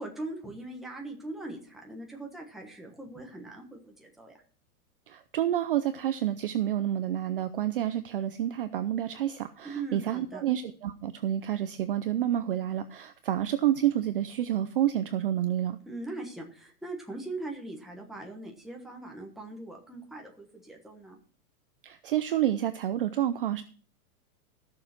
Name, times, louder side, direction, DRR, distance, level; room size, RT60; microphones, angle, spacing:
voice 1, 0.0-4.3 9.6-10.4 15.8-21.2, right 2 dB, ahead, 0 dB, 1.1 m, -40 dB
voice 2, 5.1-15.8 21.8-23.6, right 11 dB, 40° right, 10 dB, 0.5 m, -29 dB
14.0 x 6.7 x 6.0 m, 0.41 s
supercardioid pair, 175°, 45 cm